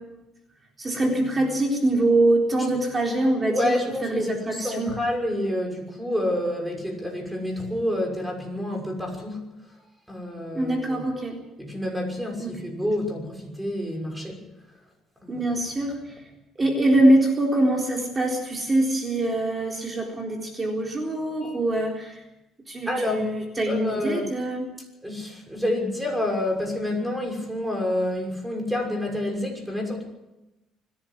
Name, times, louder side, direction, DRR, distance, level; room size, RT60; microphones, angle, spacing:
voice 1, 0.8-3.7 4.1-4.9 10.5-11.4 12.4-12.5 15.3-16.0 16.6-22.2 22.7-24.7, right 1 dB, 20° right, 1 dB, 3.9 m, -23 dB
voice 2, 3.5-9.5 10.1-11.1 11.6-14.4 15.2-15.4 21.4-21.6 22.9-23.3 23.7-24.3 25.0-30.0, left 1 dB, 5° right, 3 dB, 6.2 m, -28 dB
25.5 x 11.0 x 9.7 m, 0.98 s
cardioid pair, 115°, 0 cm